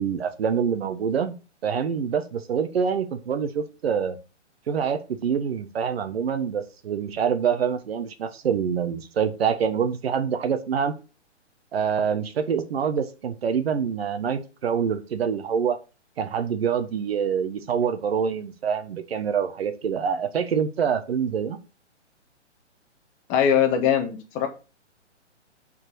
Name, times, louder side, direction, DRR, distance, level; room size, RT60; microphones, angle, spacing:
voice 1, 0.0-1.3 1.6-4.2 4.7-10.9 11.7-15.8 16.2-21.6, right 7 dB, 55° right, 8 dB, 1.2 m, -26 dB
voice 2, 23.3-24.5, left 8 dB, 20° left, 6 dB, 1.3 m, -21 dB
6.5 x 4.6 x 6.1 m, 0.32 s
figure-of-eight pair, 135°, 36 cm